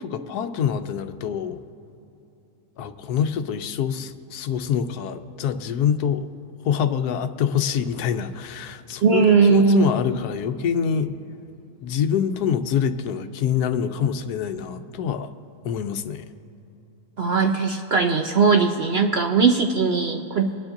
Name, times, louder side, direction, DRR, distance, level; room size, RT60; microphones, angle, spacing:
voice 1, 0.0-1.6 2.8-6.3 6.6-11.1 11.8-15.3 15.6-16.2, left 8 dB, 90° left, 9 dB, 1.2 m, -25 dB
voice 2, 9.0-9.9 17.2-20.5, right 5 dB, 65° right, 4 dB, 0.6 m, -19 dB
25.0 x 9.7 x 2.6 m, 3.0 s
omnidirectional pair, 1.6 m